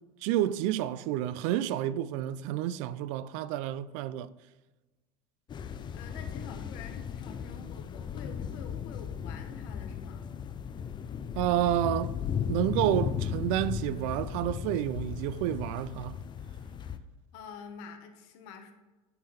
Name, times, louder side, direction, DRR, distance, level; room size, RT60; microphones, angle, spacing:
voice 1, 0.2-4.3 11.4-12.2 12.5-16.2, right 12 dB, 65° right, 0.4 m, -29 dB
sound 1, 5.5-17.0, left 8 dB, 25° left, 0.4 m, -36 dB
voice 2, 5.9-10.2 17.3-18.7, left 6 dB, 65° left, 1.1 m, -47 dB
9.3 x 3.7 x 4.3 m
supercardioid pair, 105°, 18 cm